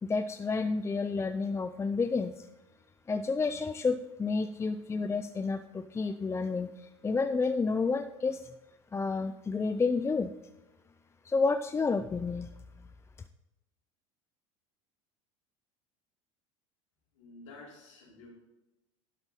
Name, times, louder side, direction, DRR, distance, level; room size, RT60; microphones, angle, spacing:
voice 1, 0.0-2.5 3.1-8.5 8.9-10.3 11.2-12.5, left 4 dB, 15° left, 9 dB, 0.5 m, -30 dB
voice 2, 17.1-18.3, left 3 dB, 80° left, -4 dB, 4.1 m, -51 dB
11.5 x 7.8 x 4.0 m, 1.0 s
hypercardioid pair, 80°, 16 cm